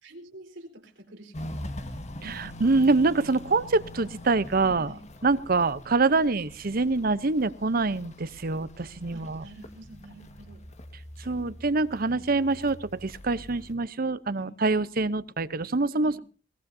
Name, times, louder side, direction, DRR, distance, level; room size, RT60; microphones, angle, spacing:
voice 1, 0.0-2.0 4.6-5.1 9.1-10.6 12.1-12.3 14.3-14.5 16.0-16.2, right 1 dB, 80° right, 3 dB, 4.2 m, -48 dB
Walk footsteps, 1.3-13.7, left 1 dB, 40° left, 1.6 m, -43 dB
voice 2, 2.2-4.9 5.2-9.4 11.2-16.2, right 3 dB, 50° right, 16 dB, 0.8 m, -25 dB
22.0 x 18.0 x 2.7 m, 0.36 s
head